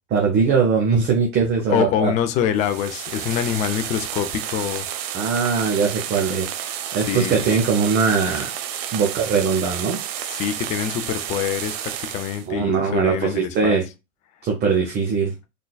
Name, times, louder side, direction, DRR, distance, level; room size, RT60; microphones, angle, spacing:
voice 1, 0.1-2.1 5.1-6.5 6.9-8.5 8.9-10.0 12.5-13.8 14.4-15.3, right 5 dB, 25° right, 0.9 m, -21 dB
voice 2, 1.7-4.9 7.1-7.5 10.3-13.8, left 9 dB, 20° left, 0.3 m, -25 dB
sound 1, 2.5-12.5, right 10 dB, 50° right, 0.7 m, -31 dB
3.7 x 3.4 x 2.3 m
figure-of-eight pair, 95°, 40 cm